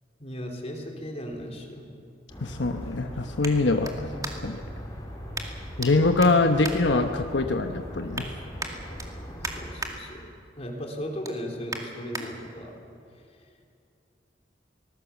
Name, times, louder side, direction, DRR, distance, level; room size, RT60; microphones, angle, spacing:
voice 1, 0.2-1.8 9.6-10.3 10.6-12.7, equal, 35° left, 2 dB, 3.4 m, -36 dB
sound 1, 2.2-4.7 5.3-5.9 6.2-7.5 7.9-8.3 8.6-9.9 10.4-10.6 11.0-12.3 12.8-12.9, right 3 dB, 20° right, 2.2 m, -38 dB
sound 2, 2.3-9.8, equal, 20° left, 4.4 m, -40 dB
voice 2, 2.4-4.6 5.8-8.3, left 3 dB, 80° left, 5 dB, 1.1 m, -24 dB
25.0 x 19.0 x 7.2 m, 2.5 s
head